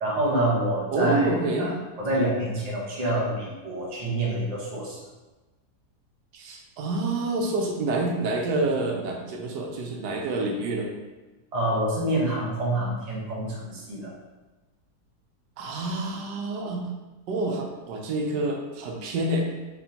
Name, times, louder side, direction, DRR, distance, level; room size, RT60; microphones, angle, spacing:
voice 1, 0.0-1.3 1.6-1.7 2.0-5.0 11.5-14.1, right 1 dB, 30° right, -5 dB, 0.8 m, -27 dB
voice 2, 0.9-1.7 6.3-10.9 15.6-16.8 17.3-19.5, right 2 dB, 90° right, 1 dB, 1.3 m, -27 dB
4.3 x 3.5 x 2.8 m, 1.2 s
omnidirectional pair, 1.8 m